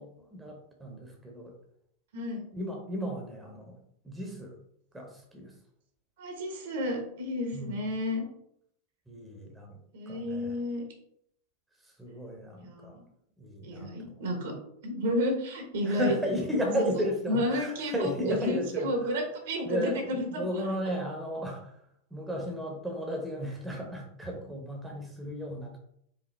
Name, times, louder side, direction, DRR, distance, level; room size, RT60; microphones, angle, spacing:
voice 1, 0.0-1.5 2.5-4.6 4.9-5.5 7.5-7.7 9.1-9.8 10.1-10.6 11.8-13.0 13.4-14.2 15.8-19.1 19.6-21.8 22.1-25.8, equal, 5° right, 1 dB, 1.0 m, -34 dB
voice 2, 2.1-2.4 6.2-8.2 9.9-10.8 12.6-13.0 13.6-14.5 14.8-16.1 16.6-16.8 17.3-20.7, equal, 55° right, 3 dB, 1.0 m, -31 dB
5.0 x 2.7 x 3.3 m, 0.72 s
figure-of-eight pair, 90°, 0 cm